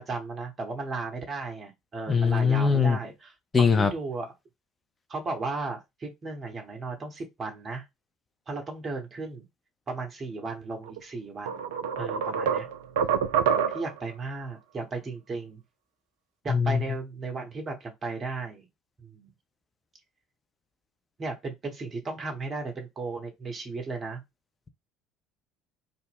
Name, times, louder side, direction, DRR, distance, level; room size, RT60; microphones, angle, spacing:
voice 1, 0.0-4.3 5.1-7.8 8.5-9.4 9.9-11.7 12.0-12.7 13.7-15.6 16.4-18.7 19.0-19.3 21.2-24.2, right 3 dB, 30° right, 0.9 m, -35 dB
voice 2, 2.1-3.0 3.5-3.9 16.5-16.8, left 5 dB, 25° left, 0.6 m, -21 dB
sound 1, 10.9-11.0 11.5-14.0, right 7 dB, 70° right, 0.3 m, -27 dB
2.5 x 2.0 x 3.5 m
figure-of-eight pair, 60°, 0 cm